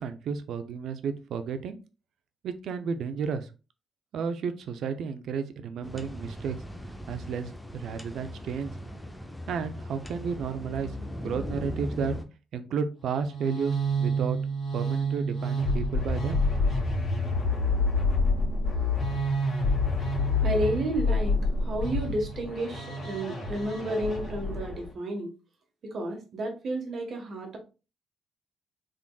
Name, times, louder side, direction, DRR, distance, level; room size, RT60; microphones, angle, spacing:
voice 1, 0.0-1.8 2.4-3.5 4.1-6.6 7.1-8.7 9.5-10.9 11.2-12.1 12.5-14.4 14.7-16.4, right 6 dB, 70° right, 10 dB, 0.5 m, -32 dB
sound 1, 5.8-12.2, equal, 5° left, 0.6 m, -38 dB
sound 2, 13.0-24.9, left 1 dB, 40° left, 1.9 m, -28 dB
voice 2, 20.4-25.3 25.8-27.6, right 1 dB, 55° right, 3 dB, 1.3 m, -31 dB
3.8 x 3.5 x 2.3 m, 0.31 s
cardioid pair, 90°, 0 cm